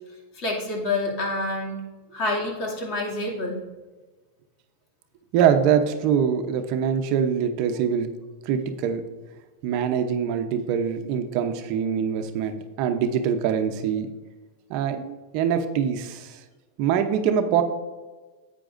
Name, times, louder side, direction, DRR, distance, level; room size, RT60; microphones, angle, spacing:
voice 1, 0.3-1.8 2.1-3.6, left 2 dB, 45° left, -1 dB, 2.5 m, -27 dB
voice 2, 5.3-8.1 8.5-9.0 9.6-14.1 14.7-16.3 16.8-17.6, right 8 dB, 55° right, 7 dB, 0.8 m, -24 dB
11.0 x 8.4 x 2.6 m, 1.2 s
supercardioid pair, 125°, 0 cm